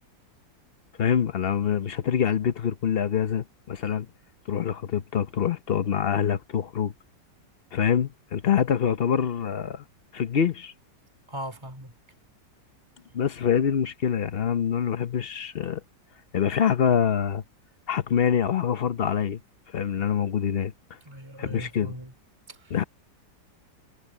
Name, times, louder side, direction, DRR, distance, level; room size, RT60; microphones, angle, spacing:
voice 1, 1.0-4.1 4.5-6.9 7.7-9.8 10.1-10.7 13.1-15.8 16.3-17.4 17.9-19.4 19.7-20.7 21.4-21.9 22.7-22.8, left 8 dB, 50° left, 0.7 m, -25 dB
voice 2, 11.3-11.9 21.0-22.1 22.5-22.9, right 1 dB, 15° right, 3.2 m, -39 dB
omnidirectional pair, 1.9 m